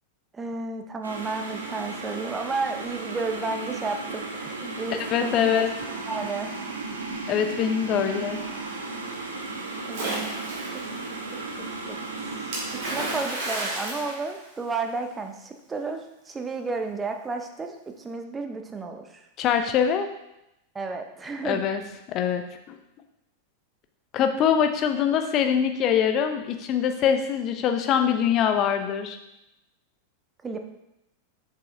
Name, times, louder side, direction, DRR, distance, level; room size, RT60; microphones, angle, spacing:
voice 1, 0.3-5.6 6.1-6.5 9.8-10.4 10.7-10.8 11.3-12.0 12.8-19.2 20.7-21.6 30.4-30.6, right 3 dB, 15° right, 5 dB, 0.7 m, -32 dB
sound 1, 1.0-13.2, right 3 dB, 70° right, 0.8 m, -35 dB
voice 2, 4.9-5.7 7.3-8.4 19.4-20.1 21.4-21.8 22.1-22.4 22.7-22.8 24.1-29.2, left 8 dB, 35° left, 7 dB, 0.6 m, -23 dB
Splash splatter, 9.9-10.9 12.5-15.0, right 2 dB, 50° right, 2.3 m, -32 dB
7.0 x 5.5 x 2.7 m, 0.86 s
figure-of-eight pair, 90°, 0 cm